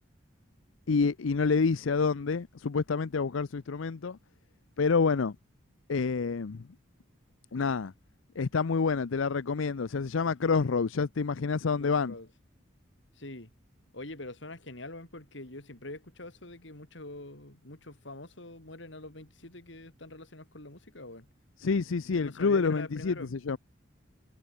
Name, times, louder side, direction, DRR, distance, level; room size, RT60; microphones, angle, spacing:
voice 1, 0.9-4.2 4.8-5.4 5.9-6.6 7.5-7.9 8.4-12.1 21.6-23.6, left 4 dB, 85° left, 0.6 m, -28 dB
voice 2, 11.7-12.3 13.2-13.5 13.9-21.3 22.2-23.3, left 2 dB, 65° left, 3.5 m, -44 dB
head